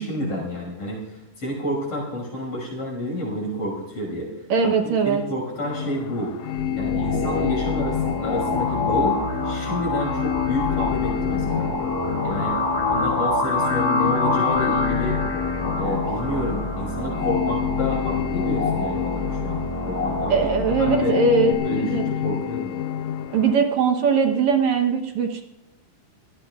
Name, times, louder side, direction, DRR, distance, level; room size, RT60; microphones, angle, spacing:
voice 1, 0.0-4.3 4.8-6.3 6.7-9.2 9.4-11.7 12.2-12.5 12.9-15.2 15.7-21.2 21.6-22.7, equal, 50° left, 0 dB, 6.8 m, -29 dB
voice 2, 4.5-5.2 20.3-22.0 23.3-25.4, right 5 dB, 65° right, 4 dB, 2.2 m, -20 dB
sound 1, 5.6-23.5, left 10 dB, 75° left, 1.7 m, -28 dB
sound 2, 6.6-21.5, left 2 dB, 10° left, 1.8 m, -26 dB
24.0 x 17.5 x 2.4 m, 0.86 s
omnidirectional pair, 3.7 m